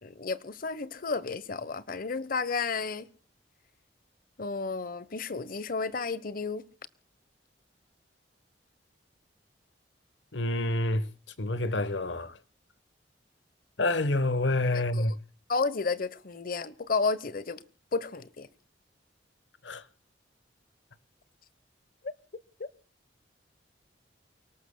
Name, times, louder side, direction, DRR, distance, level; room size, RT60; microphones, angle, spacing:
voice 1, 0.0-3.1 4.4-6.6 14.9-15.0 15.5-17.6 17.9-18.5 22.6-22.7, left 4 dB, 50° left, 1.0 m, -32 dB
voice 2, 10.3-11.1 11.4-12.4 13.8-15.2 19.6-19.8, left 2 dB, 90° left, 1.3 m, -27 dB
29.5 x 18.5 x 2.3 m
head